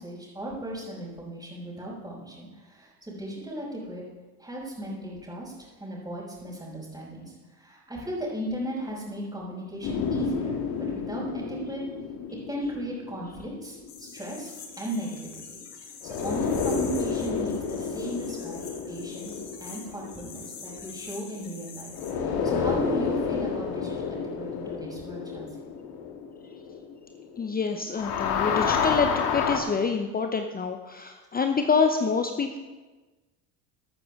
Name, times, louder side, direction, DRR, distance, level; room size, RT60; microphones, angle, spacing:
voice 1, 0.0-4.0 4.4-11.8 12.5-18.6 18.9-25.7, right 1 dB, 10° right, -9 dB, 5.0 m, -36 dB
sound 1, 9.8-14.3 16.0-21.5 21.9-27.6 27.9-29.6, left 6 dB, 50° left, 1.9 m, -30 dB
sound 2, 13.9-22.1, left 5 dB, 85° left, 1.9 m, -45 dB
voice 2, 27.4-32.6, left 5 dB, 20° left, 6 dB, 0.8 m, -26 dB
14.0 x 12.5 x 3.7 m, 1.2 s
hypercardioid pair, 70°, 47 cm